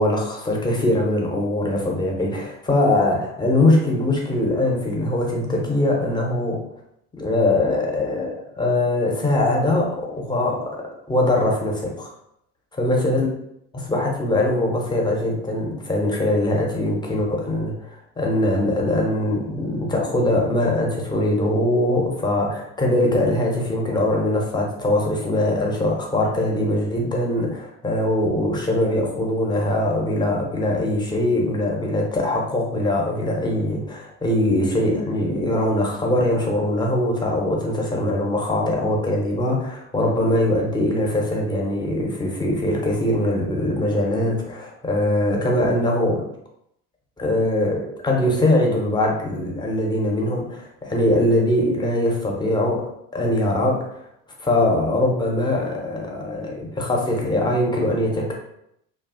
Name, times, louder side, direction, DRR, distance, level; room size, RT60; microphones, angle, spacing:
voice 1, 0.0-6.6 7.1-10.8 11.1-12.1 12.8-13.3 13.7-46.3 47.2-54.0 54.4-58.3, left 1 dB, 10° left, -1 dB, 0.4 m, -22 dB
2.5 x 2.0 x 2.4 m, 0.76 s
figure-of-eight pair, 55°, 47 cm